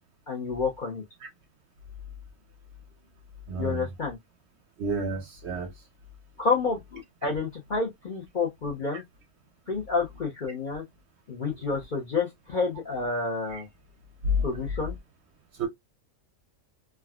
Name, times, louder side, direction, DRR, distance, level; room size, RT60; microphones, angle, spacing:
voice 1, 0.3-1.0 3.6-4.2 6.4-9.0 9.7-10.8 11.3-13.7 14.4-15.0, left 4 dB, 45° left, 0.7 m, -29 dB
voice 2, 3.5-3.9 4.8-5.7 8.9-9.0 13.5-13.6 14.2-14.4 15.5-15.7, equal, 60° right, 0.8 m, -29 dB
3.5 x 2.2 x 2.3 m
omnidirectional pair, 1.5 m